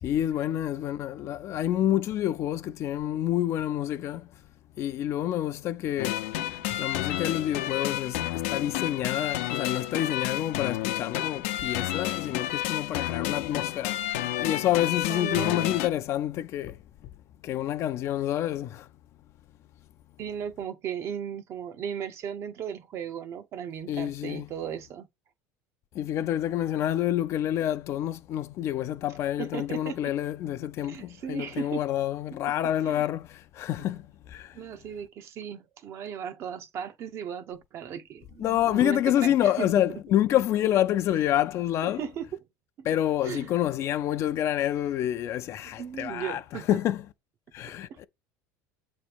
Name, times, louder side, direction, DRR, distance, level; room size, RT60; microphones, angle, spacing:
voice 1, 0.0-4.3 4.8-6.2 6.8-14.0 14.4-17.1 17.4-18.9 23.9-24.5 25.9-34.6 38.4-42.0 42.8-46.4 46.7-47.0 47.5-48.0, left 12 dB, 40° left, 0.5 m, -28 dB
sound 1, 6.0-15.9, left 14 dB, 85° left, 0.7 m, -30 dB
voice 2, 15.1-15.8 20.2-25.1 29.4-30.1 30.9-31.8 32.3-32.4 32.9-33.0 34.5-40.0 41.8-42.4 42.8-42.9 43.2-43.5 45.6-46.8 47.9-48.0, right 8 dB, 40° right, 0.7 m, -36 dB
7.5 x 3.1 x 5.0 m
cardioid pair, 145°, 7 cm